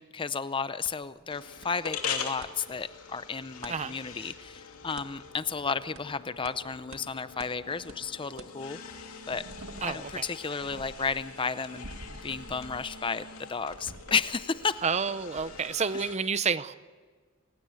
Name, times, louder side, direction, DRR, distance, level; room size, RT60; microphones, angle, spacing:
voice 1, 0.0-8.8 9.3-9.4 9.8-14.8, left 5 dB, 25° left, 14 dB, 0.6 m, -33 dB
sound 1, 0.9-1.0 1.6-1.7 2.0-2.5 3.6-3.8 5.0-5.1 6.0-6.1 6.5-6.6 6.9-7.0 7.4-7.5 7.9-8.0 8.4-8.5 9.0-15.0 15.4-15.6, right 2 dB, 80° right, 1.9 m, -48 dB
sound 2, 1.3-16.2, left 6 dB, 80° left, 2.8 m, -43 dB
voice 2, 9.8-10.3 14.8-16.7, right 5 dB, 30° right, 14 dB, 0.7 m, -29 dB
28.5 x 16.5 x 8.4 m, 1.5 s
head